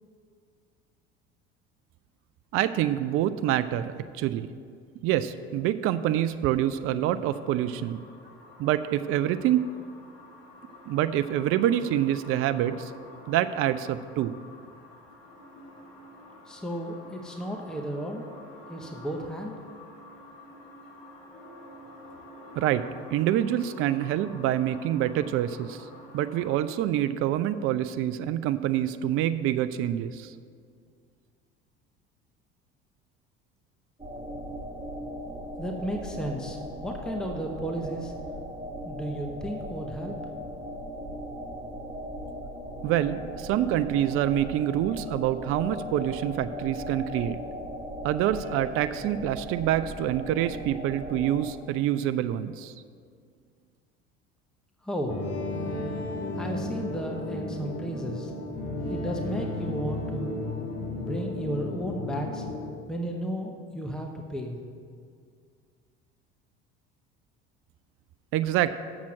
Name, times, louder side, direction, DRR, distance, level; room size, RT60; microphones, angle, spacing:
voice 1, 2.5-4.5 5.0-8.0 8.6-9.6 10.9-12.9 13.3-14.3 22.6-25.9 26.1-30.3 42.8-47.4 48.0-52.7 68.3-68.8, right 12 dB, 45° right, 12 dB, 0.4 m, -26 dB
sound 1, 7.3-26.6, left 1 dB, 60° left, 2.0 m, -48 dB
voice 2, 16.5-18.3 18.7-19.5 35.6-38.1 38.8-40.1 54.8-55.2 56.4-58.3 58.9-60.3 60.9-62.5 62.9-64.6, equal, ahead, 2 dB, 0.9 m, -33 dB
sound 2, 34.0-51.5, equal, 15° right, 1.9 m, -38 dB
sound 3, 55.1-62.7, left 2 dB, 75° left, 1.5 m, -33 dB
7.4 x 6.1 x 7.3 m, 2.2 s
hypercardioid pair, 70°, 31 cm